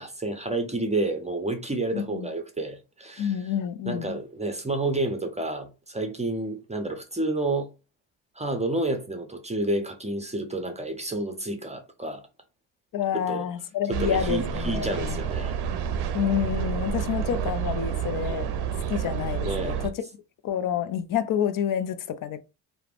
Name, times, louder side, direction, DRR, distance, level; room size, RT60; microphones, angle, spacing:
voice 1, 0.0-3.4 3.9-7.7 8.4-12.2 13.1-13.5 13.9-15.6 19.4-19.8, right 2 dB, 15° right, 0.6 m, -30 dB
voice 2, 1.9-2.3 3.2-4.2 12.9-15.2 16.1-18.5 18.9-20.0 20.4-22.4, left 9 dB, 45° left, 0.5 m, -28 dB
sound 1, 13.9-19.9, right 7 dB, 60° right, 0.6 m, -29 dB
3.2 x 2.1 x 2.4 m
supercardioid pair, 65°, 46 cm